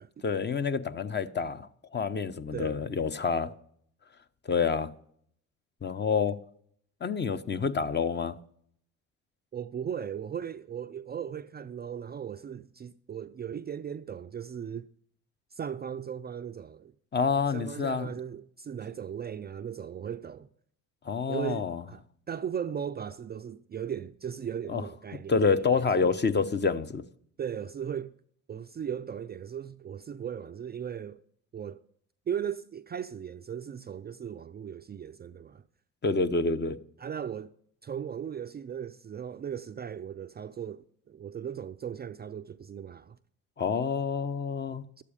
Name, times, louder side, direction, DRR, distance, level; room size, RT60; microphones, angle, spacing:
voice 1, 0.2-3.5 4.4-4.9 5.8-6.4 7.0-8.4 17.1-18.1 21.0-21.8 24.7-24.9 25.3-27.0 36.0-36.8 43.6-44.9, left 5 dB, 30° left, 0.7 m, -28 dB
voice 2, 2.5-2.9 9.5-14.9 15.5-16.9 17.5-20.5 21.3-26.1 27.4-28.1 28.5-31.2 31.5-31.8 32.3-35.6 37.0-37.5 37.8-43.2 45.0-45.1, right 8 dB, 30° right, 0.4 m, -37 dB
11.5 x 8.3 x 5.0 m
supercardioid pair, 60°, 36 cm